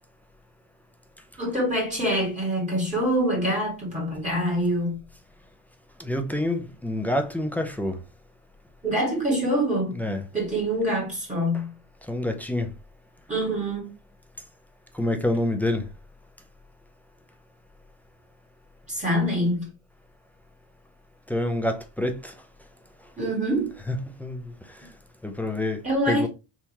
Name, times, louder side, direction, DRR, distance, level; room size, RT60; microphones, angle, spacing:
voice 1, 1.4-5.0 8.8-10.0 10.3-11.8 13.3-13.9 18.9-19.7 23.2-23.7 25.8-26.3, equal, 15° right, 1.7 m, -25 dB
voice 2, 6.0-8.0 9.9-10.2 12.1-12.7 14.9-15.9 21.3-22.3 23.9-24.9 25.2-26.3, left 1 dB, 5° left, 0.3 m, -27 dB
3.5 x 2.8 x 2.9 m
cardioid pair, 130°, 46 cm